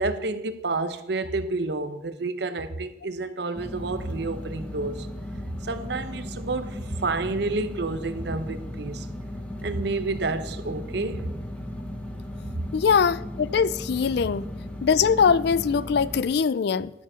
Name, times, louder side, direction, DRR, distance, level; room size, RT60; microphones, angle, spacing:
voice 1, 0.0-5.1 5.6-9.1 9.6-11.3 12.4-12.5, right 3 dB, 65° right, 0.7 m, -29 dB
sound 1, 3.5-16.2, left 1 dB, 10° left, 1.0 m, -36 dB
voice 2, 12.7-14.5 14.8-16.9, left 6 dB, 60° left, 0.4 m, -22 dB
11.5 x 7.5 x 4.9 m
head